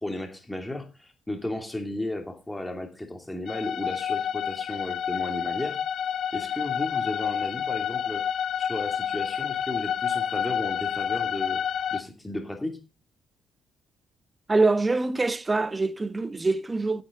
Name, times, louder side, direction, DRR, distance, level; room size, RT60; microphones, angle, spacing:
voice 1, 0.0-5.8 6.3-8.3 8.6-11.6 11.9-12.8, left 1 dB, 10° left, 2.7 m, -34 dB
sound 1, 3.5-12.0, left 8 dB, 65° left, 0.9 m, -29 dB
voice 2, 14.5-17.0, right 3 dB, 20° right, 1.1 m, -24 dB
15.0 x 8.2 x 3.9 m
cardioid pair, 90°, 0 cm